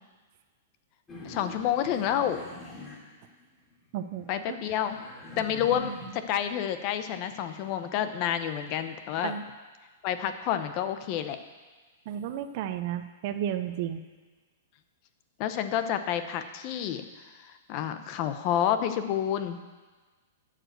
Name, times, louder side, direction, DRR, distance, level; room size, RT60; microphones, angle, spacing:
sound 1, 1.1-3.7 4.1-6.3 6.8-8.8, left 1 dB, 15° left, 2.6 m, -44 dB
voice 1, 1.2-2.4 4.3-5.0 5.4-9.3 10.0-11.4 15.4-19.6, left 10 dB, 40° left, 10 dB, 0.7 m, -29 dB
voice 2, 3.9-4.6 9.2-9.4 12.1-14.0, right 10 dB, 45° right, 9 dB, 0.7 m, -33 dB
12.0 x 5.0 x 7.9 m, 1.3 s
hypercardioid pair, 145°, 0 cm